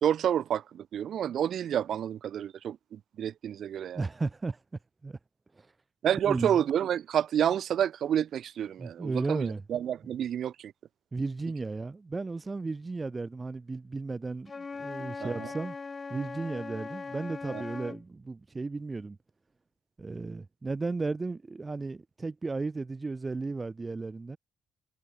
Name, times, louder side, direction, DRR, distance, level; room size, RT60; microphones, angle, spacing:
voice 1, 0.0-4.0 6.0-10.7 15.2-15.5 17.5-17.6, right 9 dB, 65° right, 2.5 m, -29 dB
voice 2, 3.9-4.6 5.0-5.2 5.5-5.7 6.2-6.6 8.8-9.6 11.1-15.8 16.1-19.2 20.0-24.4, right 3 dB, 25° right, 2.4 m, -34 dB
Wind instrument woodwind instrument, 14.5-18.0, left 4 dB, 30° left, 2.6 m, -40 dB
cardioid pair, 90°, 0 cm